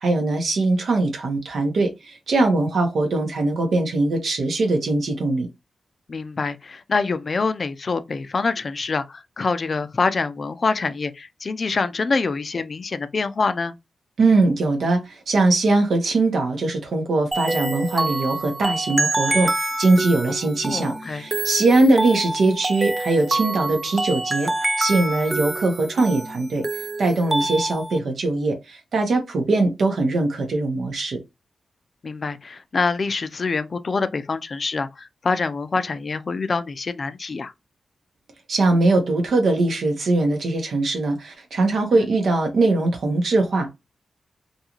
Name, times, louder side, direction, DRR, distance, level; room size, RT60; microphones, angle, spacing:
voice 1, 0.0-5.5 14.2-24.5 24.8-26.6 27.0-31.2 38.5-43.7, right 2 dB, 75° right, 0.8 m, -21 dB
voice 2, 6.1-13.7 20.6-21.2 32.0-37.5 41.9-42.0, left 4 dB, 55° left, 0.4 m, -25 dB
sound 1, 17.3-28.0, right 2 dB, 25° right, 0.4 m, -26 dB
2.6 x 2.4 x 2.9 m
cardioid pair, 50°, 0 cm